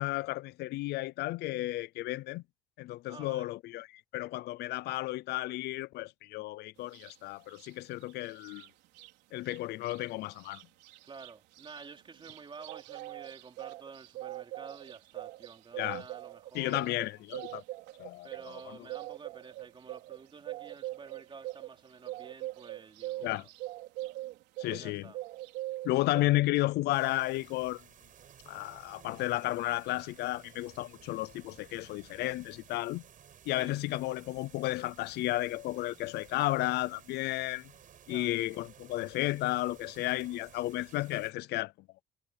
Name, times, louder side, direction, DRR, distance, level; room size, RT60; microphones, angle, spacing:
voice 1, 0.0-2.4 2.8-3.9 4.1-8.7 9.3-10.6 15.8-16.0 16.5-17.6 18.0-18.8 23.2-23.4 24.6-25.1 25.8-27.8 28.5-33.0 33.5-37.7 38.1-41.7, left 17 dB, 80° left, 0.5 m, -33 dB
voice 2, 3.0-3.5 11.0-16.8 18.2-23.5 24.6-25.2 33.5-33.7 38.1-38.4, right 5 dB, 30° right, 4.0 m, -50 dB
sound 1, 6.9-7.1 7.5-9.1 9.4-9.6 9.8-24.9 25.1-26.2, right 17 dB, 90° right, 3.8 m, -43 dB
sound 2, 26.9-41.3, right 9 dB, 50° right, 5.7 m, -56 dB
cardioid pair, 110°, 17 cm